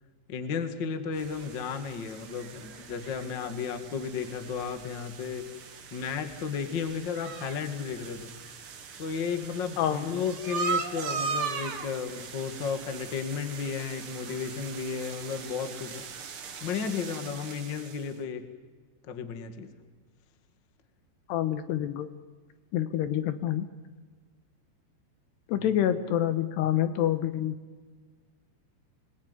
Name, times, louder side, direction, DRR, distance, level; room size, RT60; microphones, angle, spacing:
voice 1, 0.3-8.4 9.0-16.0 16.6-18.5 19.1-19.7 25.5-25.9, left 6 dB, 50° left, 8 dB, 1.4 m, -34 dB
sound 1, 1.1-18.1, right 5 dB, 70° right, 1.3 m, -39 dB
voice 2, 21.3-22.1 22.7-23.7 25.5-27.6, left 11 dB, 75° left, 11 dB, 3.0 m, -27 dB
27.0 x 20.5 x 9.7 m, 1.5 s
omnidirectional pair, 5.2 m